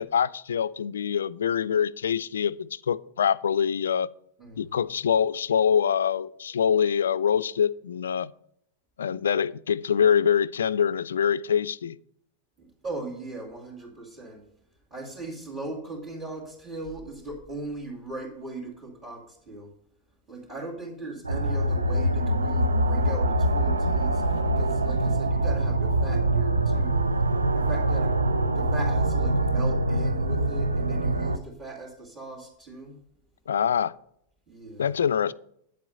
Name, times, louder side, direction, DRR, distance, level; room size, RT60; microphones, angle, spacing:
voice 1, 0.0-4.1 4.6-8.3 9.0-12.0 33.5-33.9 34.8-35.3, left 8 dB, 75° left, 0.3 m, -24 dB
voice 2, 4.4-4.9 12.6-14.4 14.9-19.7 20.3-27.0 27.5-28.1 28.5-33.0 34.5-34.9, right 2 dB, 25° right, 2.7 m, -39 dB
sound 1, 21.2-31.4, right 1 dB, 85° right, 0.6 m, -24 dB
9.1 x 7.6 x 5.3 m
figure-of-eight pair, 95°, 0 cm